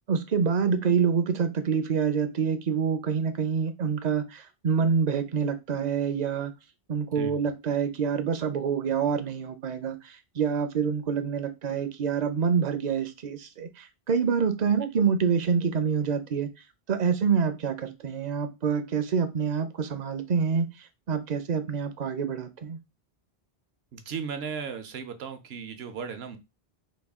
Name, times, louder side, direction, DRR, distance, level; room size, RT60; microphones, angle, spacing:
voice 1, 0.1-6.5 6.9-16.5 16.9-20.7 21.1-22.8, right 6 dB, 50° right, 0.6 m, -26 dB
voice 2, 23.9-26.4, right 6 dB, 75° right, 0.9 m, -36 dB
4.0 x 2.2 x 3.5 m
omnidirectional pair, 1.1 m